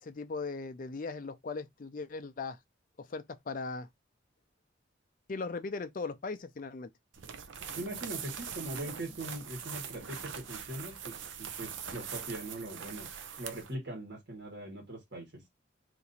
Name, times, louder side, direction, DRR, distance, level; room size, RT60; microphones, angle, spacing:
voice 1, 0.0-2.6 3.0-3.9 5.3-6.9, left 4 dB, 45° left, 0.4 m, -38 dB
sound 1, 7.1-13.7, right 7 dB, 80° right, 0.5 m, -42 dB
voice 2, 7.8-13.1 13.4-15.4, right 1 dB, 60° right, 1.5 m, -41 dB
2.9 x 2.6 x 4.0 m
head